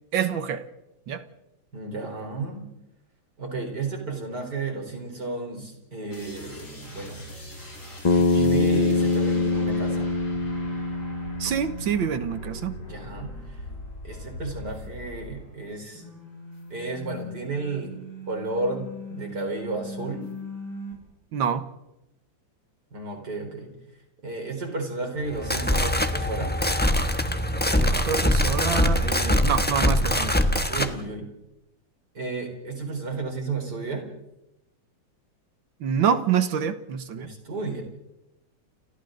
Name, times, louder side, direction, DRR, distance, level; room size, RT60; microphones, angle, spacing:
voice 1, 0.1-0.6 1.1-1.2 11.4-12.8 21.3-21.7 27.8-30.4 35.8-37.3, right 7 dB, 85° right, 10 dB, 2.0 m, -26 dB
voice 2, 1.7-2.7 3.4-7.2 8.2-10.1 12.8-13.6 14.0-16.0 16.7-17.9 18.3-20.3 22.9-23.7 24.2-26.5 30.7-31.3 32.1-34.1 37.2-37.8, right 3 dB, 60° right, 3 dB, 4.9 m, -32 dB
sound 1, 6.1-15.6 15.9-20.9, equal, 75° left, 7.2 m, -40 dB
Bass guitar, 8.0-12.3, left 3 dB, 50° left, 0.4 m, -24 dB
sound 2, 25.3-30.9, left 1 dB, 5° left, 0.9 m, -23 dB
30.0 x 24.5 x 3.9 m, 0.92 s
omnidirectional pair, 2.1 m